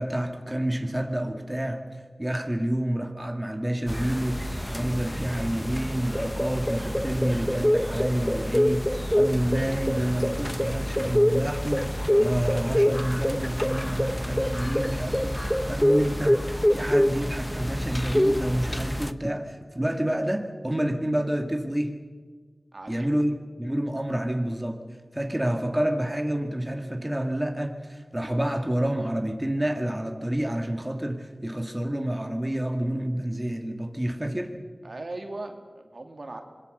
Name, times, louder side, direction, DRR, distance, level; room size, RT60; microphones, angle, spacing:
voice 1, 0.0-1.8 2.2-4.4 4.7-16.4 16.7-21.9 22.9-24.8 25.1-34.5, right 1 dB, 15° right, 4 dB, 2.2 m, -28 dB
sound 1, 3.9-19.1, equal, 10° left, 0.9 m, -26 dB
voice 2, 22.7-23.2 34.8-36.4, right 2 dB, 60° right, 4 dB, 2.5 m, -38 dB
26.0 x 21.5 x 6.8 m, 1.5 s
wide cardioid pair, 45°, 0 cm